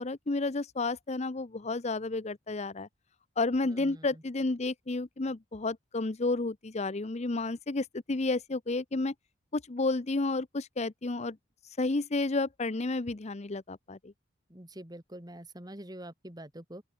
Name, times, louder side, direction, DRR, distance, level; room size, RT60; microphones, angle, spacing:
voice 1, 0.0-2.9 3.4-9.1 9.5-11.4 11.8-14.1, left 3 dB, 35° left, 0.7 m, -31 dB
voice 2, 3.6-4.2 14.5-16.8, right 1 dB, 20° right, 2.6 m, -46 dB
open air
head